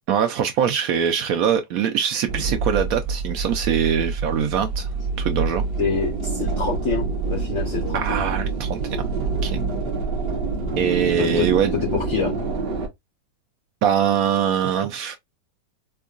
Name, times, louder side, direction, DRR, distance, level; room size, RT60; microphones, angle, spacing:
voice 1, 0.1-4.9 5.2-5.6 7.9-9.1 9.4-9.6 10.8-11.7 13.8-15.2, right 8 dB, 85° right, 0.7 m, -22 dB
sound 1, 2.3-12.9, right 4 dB, 55° right, 0.6 m, -26 dB
voice 2, 5.8-8.2 11.2-12.4, left 5 dB, 65° left, 0.7 m, -26 dB
4.5 x 2.3 x 2.4 m
omnidirectional pair, 2.1 m